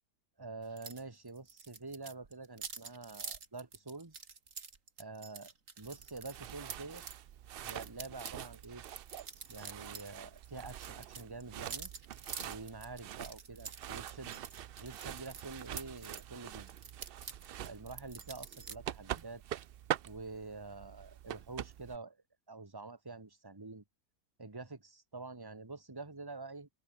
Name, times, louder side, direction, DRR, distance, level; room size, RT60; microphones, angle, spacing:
voice 1, 0.4-4.2 5.0-7.0 7.6-8.8 9.5-11.9 12.4-14.4 14.8-16.7 17.6-19.4 20.0-22.2 22.5-23.8 24.4-26.7, right 3 dB, 15° right, 1.9 m, -47 dB
sound 1, 0.8-1.0 1.3-7.2 7.6-10.1 10.4-16.2 16.7-18.8, right 5 dB, 60° right, 2.4 m, -47 dB
sound 2, 5.8-22.0, right 11 dB, 75° right, 0.5 m, -45 dB
open air
omnidirectional pair, 1.6 m